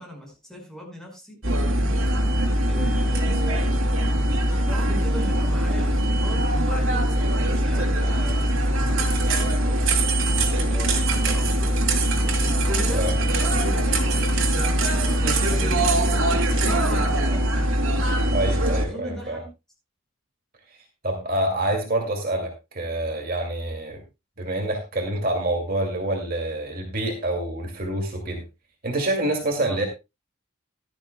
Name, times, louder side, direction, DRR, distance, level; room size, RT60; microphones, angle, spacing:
voice 1, 0.0-1.4 2.7-3.9 4.6-10.1 10.7-11.8 12.2-17.7 18.7-19.5 29.6-29.8, equal, 5° left, 0 dB, 5.1 m, -39 dB
sound 1, 1.4-18.8, right 1 dB, 85° right, 2.6 m, -22 dB
voice 2, 18.3-19.4 21.0-24.0 24.4-28.4 28.8-29.9, right 1 dB, 45° right, 2 dB, 2.4 m, -27 dB
16.0 x 12.0 x 2.2 m, 0.25 s
head